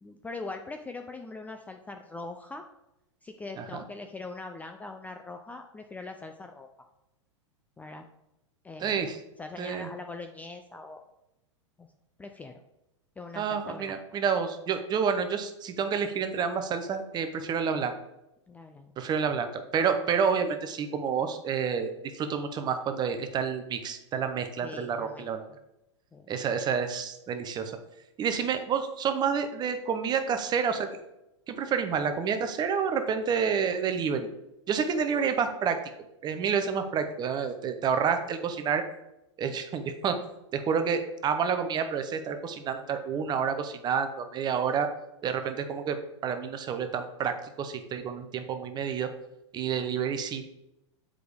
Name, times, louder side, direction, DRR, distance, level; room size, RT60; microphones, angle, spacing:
voice 1, 0.0-2.6 3.2-6.7 7.8-8.1 8.6-8.9 9.4-11.0 11.8-11.9 12.2-12.6 13.2-14.0 18.5-18.9 24.6-25.3 26.1-26.3, left 3 dB, 10° left, 5 dB, 0.4 m, -41 dB
voice 2, 8.8-9.2 9.6-9.9 13.3-17.9 19.0-25.5 26.3-27.8 28.2-30.9 31.5-34.3 34.7-35.8 36.2-38.8 39.4-40.2 40.5-44.9 45.2-49.1 49.5-50.5, right 6 dB, 25° right, 8 dB, 0.8 m, -29 dB
7.8 x 4.9 x 3.4 m, 0.89 s
hypercardioid pair, 105°, 16 cm